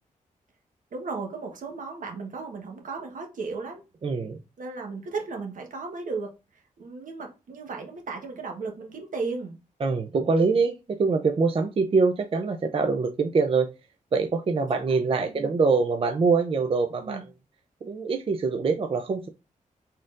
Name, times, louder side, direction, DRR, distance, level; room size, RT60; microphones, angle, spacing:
voice 1, 0.9-3.8 4.6-9.6 14.6-15.0 15.3-15.5 17.0-17.2, right 4 dB, 75° right, 1.2 m, -35 dB
voice 2, 4.0-4.4 9.8-13.7 14.1-17.2 17.8-19.3, right 4 dB, 40° right, 0.4 m, -24 dB
4.2 x 3.8 x 2.5 m
cardioid pair, 85°, 14 cm